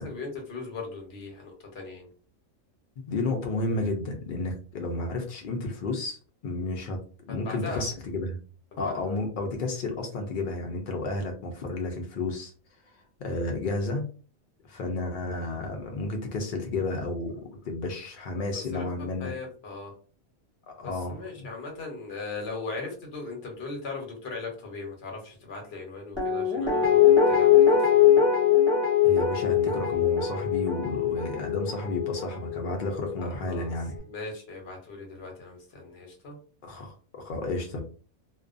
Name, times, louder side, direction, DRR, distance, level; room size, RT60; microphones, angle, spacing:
voice 1, 0.0-2.1 7.3-7.9 8.8-8.9 18.4-18.9 19.2-19.9 20.8-28.2 33.5-33.7 34.0-36.4, left 3 dB, 55° left, 1 dB, 1.0 m, -39 dB
voice 2, 3.1-6.2 6.4-7.0 7.3-8.4 8.8-12.5 13.2-14.0 14.7-19.3 20.7-21.5 29.0-33.9 36.6-37.8, left 2 dB, 85° left, 3 dB, 0.4 m, -32 dB
Guitar, 26.2-33.2 33.5-33.6, left 8 dB, 25° right, 0.7 m, -22 dB
2.4 x 2.2 x 2.4 m, 0.39 s
omnidirectional pair, 1.5 m